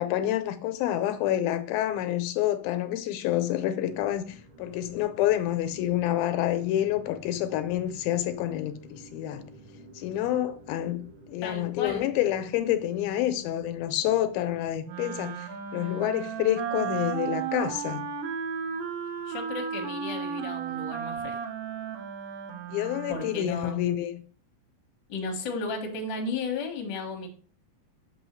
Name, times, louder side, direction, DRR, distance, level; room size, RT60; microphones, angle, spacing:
voice 1, 0.0-9.4 10.0-11.0 11.3-15.5 15.7-18.1 22.7-24.2, left 12 dB, 80° left, 2.4 m, -28 dB
sound 1, 3.8-14.7, right 1 dB, 55° right, 1.4 m, -51 dB
voice 2, 11.4-12.1 19.3-21.4 23.1-23.7 25.1-27.3, left 3 dB, 50° left, 1.3 m, -34 dB
Wind instrument woodwind instrument, 14.8-23.5, right 7 dB, 80° right, 2.5 m, -34 dB
6.5 x 5.4 x 3.1 m
omnidirectional pair, 4.3 m